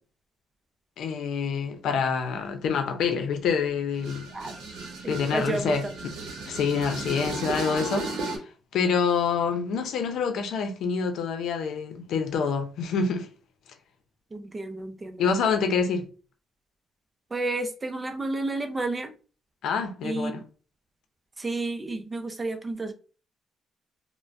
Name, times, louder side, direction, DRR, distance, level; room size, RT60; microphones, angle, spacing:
voice 1, 1.0-4.3 5.1-6.1 6.5-8.4 8.7-13.3 15.2-16.1 19.6-20.4, left 5 dB, 75° left, 0.6 m, -27 dB
sound 1, 3.9-8.4, right 3 dB, 80° right, 0.8 m, -35 dB
voice 2, 5.0-5.9 14.3-15.2 17.3-19.1 20.0-20.4 21.4-22.9, right 2 dB, 25° right, 0.5 m, -31 dB
2.5 x 2.1 x 3.3 m
cardioid pair, 90°, 0 cm